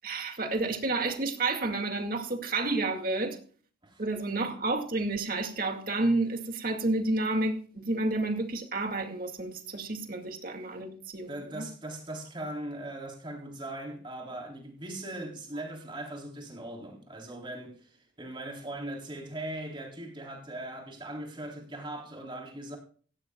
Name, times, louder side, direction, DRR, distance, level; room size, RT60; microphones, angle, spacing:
voice 1, 0.0-3.4 4.0-11.7, right 2 dB, 50° right, 2.2 m, -30 dB
voice 2, 11.3-22.8, right 1 dB, 25° right, 3.7 m, -40 dB
16.5 x 16.0 x 2.4 m
head